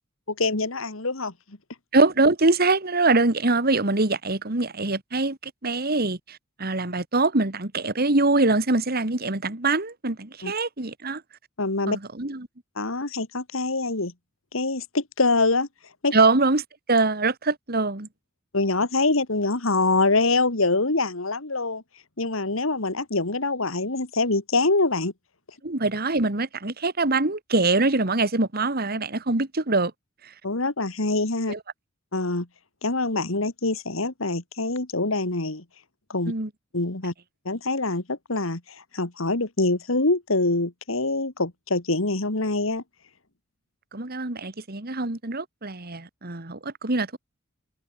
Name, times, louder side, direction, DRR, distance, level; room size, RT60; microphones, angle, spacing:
voice 1, 0.3-1.6 10.4-10.5 11.6-12.0 12.8-14.1 14.5-15.7 16.0-16.1 18.5-21.8 22.2-25.1 30.4-31.5 32.1-32.5 32.8-35.6 36.1-36.3 36.7-37.1 37.4-42.8, left 2 dB, 75° left, 2.4 m, -25 dB
voice 2, 1.9-11.2 11.9-12.5 16.1-18.1 25.6-29.9 31.5-31.6 36.3-36.5 43.9-47.2, right 3 dB, 50° right, 2.3 m, -23 dB
head